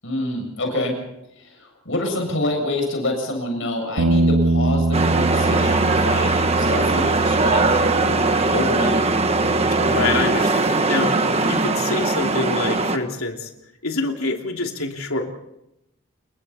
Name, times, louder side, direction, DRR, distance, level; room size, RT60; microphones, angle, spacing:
voice 1, 0.0-0.9 1.4-8.2 8.5-9.0, left 1 dB, 65° left, 3 dB, 7.6 m, -27 dB
Bass guitar, 4.0-10.2, right 2 dB, 85° right, 1.3 m, -24 dB
sound 1, 4.9-13.0, right 3 dB, 30° right, 1.4 m, -20 dB
voice 2, 9.8-11.1 11.4-13.5 13.8-15.3, left 3 dB, 85° left, 2 dB, 3.0 m, -26 dB
28.5 x 23.0 x 4.3 m, 0.86 s
head